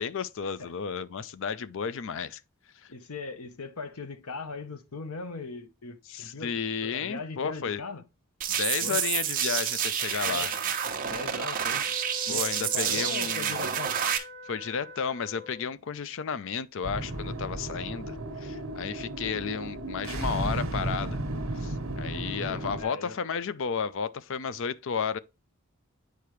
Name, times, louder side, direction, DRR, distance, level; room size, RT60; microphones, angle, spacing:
voice 1, 0.0-2.4 6.1-7.8 8.6-10.5 12.3-13.7 14.5-21.2 21.5-25.2, left 6 dB, 60° left, 0.5 m, -33 dB
voice 2, 2.9-8.0 8.8-9.1 10.3-10.5 11.1-11.8 12.3-13.9 22.5-23.2, left 3 dB, 80° left, 0.9 m, -39 dB
sound 1, 8.4-14.2, right 9 dB, 40° right, 1.0 m, -29 dB
sound 2, 11.8-15.7, left 3 dB, 10° left, 1.4 m, -44 dB
sound 3, 16.8-22.8, right 1 dB, 65° right, 1.2 m, -34 dB
8.5 x 4.6 x 3.1 m
head